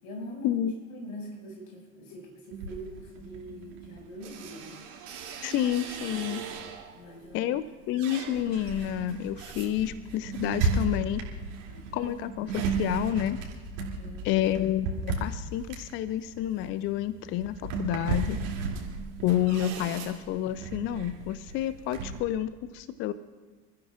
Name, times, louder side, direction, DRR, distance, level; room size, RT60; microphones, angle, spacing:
voice 1, 0.0-0.6 0.9-4.8 6.9-7.5 11.6-12.5 14.0-14.4, equal, 65° left, -1 dB, 6.0 m, -43 dB
sound 1, 2.5-7.0 7.5-22.2, right 4 dB, 55° right, 2.7 m, -35 dB
voice 2, 5.4-6.4 7.3-11.2 11.9-13.4 14.2-18.4 19.2-23.1, left 12 dB, 30° left, 16 dB, 0.4 m, -29 dB
27.5 x 14.0 x 2.4 m, 1.3 s
figure-of-eight pair, 75°, 44 cm